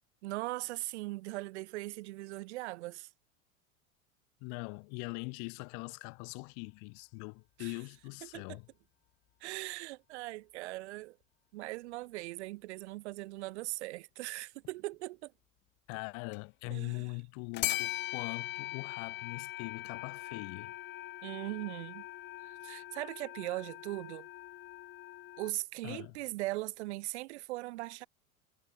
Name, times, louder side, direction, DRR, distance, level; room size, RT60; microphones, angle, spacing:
voice 1, 0.2-3.1 7.6-7.7 8.2-8.6 9.4-11.2 11.5-15.3 16.7-17.1 21.2-22.1 22.4-24.3 25.4-28.1, right 20 dB, 55° right, 2.0 m, -40 dB
voice 2, 4.4-8.7 15.9-20.7 25.8-26.1, left 40 dB or more, 45° left, 1.9 m, -42 dB
sound 1, 14.6-14.9 16.3-16.4 17.5-25.5, left 15 dB, 25° left, 0.8 m, -41 dB
figure-of-eight pair, 80°, 41 cm